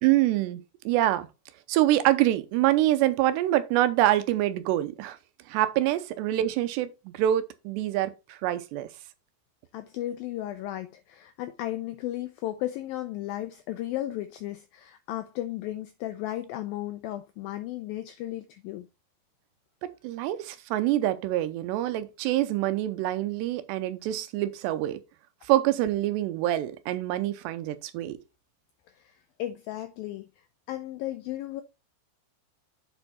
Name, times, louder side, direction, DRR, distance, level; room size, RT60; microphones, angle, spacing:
voice 1, 0.0-1.3 1.7-5.2 5.5-8.9 19.8-25.0 25.5-28.2, right 14 dB, 85° right, 2.9 m, -25 dB
voice 2, 9.7-18.9 28.9-30.3 30.7-31.6, left 14 dB, 90° left, 2.0 m, -35 dB
7.9 x 4.5 x 4.2 m
omnidirectional pair, 4.8 m